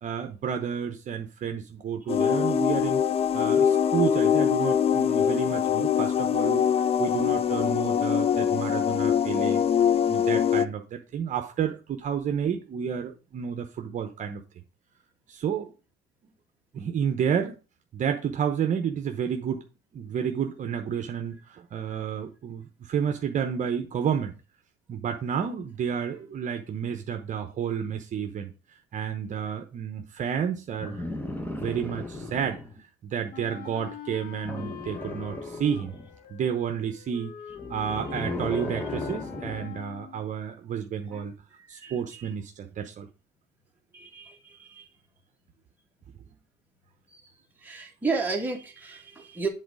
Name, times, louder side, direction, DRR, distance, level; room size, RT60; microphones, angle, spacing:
voice 1, 0.0-3.0 3.3-6.6 7.0-9.6 10.1-14.4 15.3-15.7 16.7-17.6 17.9-19.6 19.9-24.4 24.9-28.5 28.9-31.0 31.6-32.6 33.0-35.9 36.3-37.3 37.7-41.3 41.7-43.1, right 8 dB, 50° right, 5 dB, 0.9 m, -30 dB
sound 1, 2.1-10.6, left 8 dB, 35° left, 0.4 m, -23 dB
sound 2, 30.8-32.8 34.4-36.2 37.5-39.8 41.1-41.2, left 2 dB, 10° left, 1.2 m, -36 dB
Wind instrument woodwind instrument, 33.3-40.3, left 9 dB, 65° left, 0.9 m, -43 dB
voice 2, 39.5-39.8 40.9-41.0 41.6-42.3 43.9-44.9 47.1-47.2 47.6-49.5, right 4 dB, 10° right, 0 dB, 2.0 m, -34 dB
7.9 x 3.9 x 4.8 m, 0.32 s
cardioid pair, 110°, 17 cm